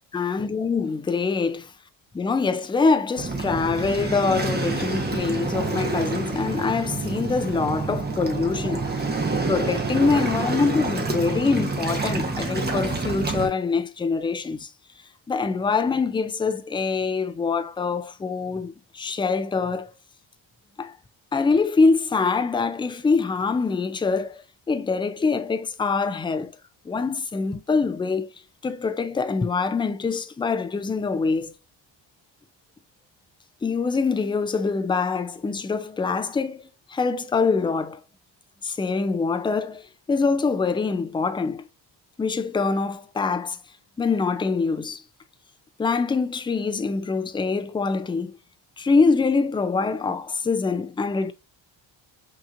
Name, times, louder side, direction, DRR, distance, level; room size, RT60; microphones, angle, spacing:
voice 1, 0.1-1.7 2.1-8.9 9.5-14.7 15.3-19.9 20.8-20.9 21.3-24.4 24.7-26.6 26.9-28.3 28.6-31.5 33.6-38.0 38.6-41.6 42.2-43.6 44.0-45.0 45.8-48.4 48.8-51.3, left 4 dB, 10° left, 0.3 m, -24 dB
Waves surf, 3.2-13.5, right 3 dB, 20° right, 1.0 m, -27 dB
5.7 x 2.9 x 2.4 m
cardioid pair, 120°, 46 cm